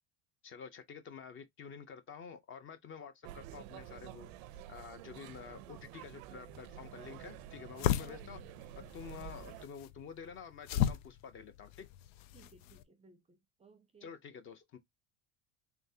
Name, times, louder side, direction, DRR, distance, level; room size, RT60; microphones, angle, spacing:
voice 1, 0.4-8.4 8.8-11.9 14.0-14.8, left 6 dB, 30° left, 0.5 m, -49 dB
sound 1, 3.2-9.6, right 12 dB, 80° right, 0.6 m, -50 dB
sound 2, 6.5-12.8, left 11 dB, 85° left, 0.7 m, -37 dB
voice 2, 8.0-8.5 12.3-14.1, right 3 dB, 15° right, 0.5 m, -60 dB
3.8 x 3.5 x 2.6 m
cardioid pair, 155°, 40 cm